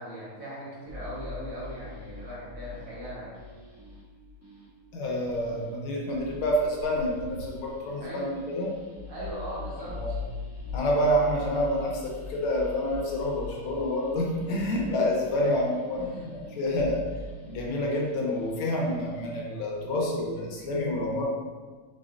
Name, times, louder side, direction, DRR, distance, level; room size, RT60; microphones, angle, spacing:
voice 1, 0.0-3.4 8.0-8.3 9.1-10.2 15.4-15.5 15.9-16.5, equal, 60° right, -9 dB, 2.2 m, -39 dB
sound 1, 0.9-19.3, left 4 dB, 25° right, 0.3 m, -43 dB
voice 2, 4.9-8.8 10.7-17.1 17.5-21.3, left 1 dB, 75° left, -2 dB, 1.6 m, -28 dB
4.5 x 4.2 x 2.5 m, 1.4 s
omnidirectional pair, 2.4 m